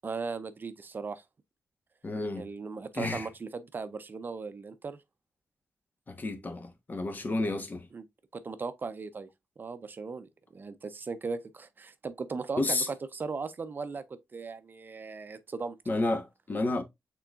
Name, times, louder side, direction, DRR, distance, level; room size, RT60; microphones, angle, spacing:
voice 1, 0.0-1.2 2.4-5.0 7.9-8.0 8.3-9.3 9.6-15.8, right 4 dB, 45° right, 0.5 m, -38 dB
voice 2, 2.0-2.5 2.9-3.3 6.1-7.9 12.6-12.9 15.9-16.8, left 2 dB, 40° left, 1.0 m, -31 dB
5.8 x 3.8 x 2.3 m
cardioid pair, 80°, 5 cm